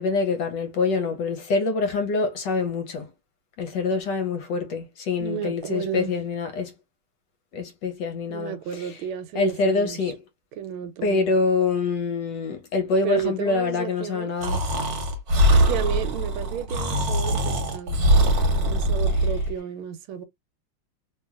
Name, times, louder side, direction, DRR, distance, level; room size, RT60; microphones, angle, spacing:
voice 1, 0.0-3.1 3.6-6.7 7.5-9.0 9.3-10.2 11.0-14.7 19.1-19.3, left 4 dB, 70° left, 1.1 m, -25 dB
voice 2, 5.2-6.2 8.3-10.0 10.6-11.3 13.0-14.3 15.7-18.0 18.6-20.2, right 8 dB, 80° right, 1.4 m, -32 dB
Breathing, 14.4-19.5, right 1 dB, 55° right, 1.2 m, -22 dB
2.9 x 2.9 x 2.3 m
omnidirectional pair, 2.3 m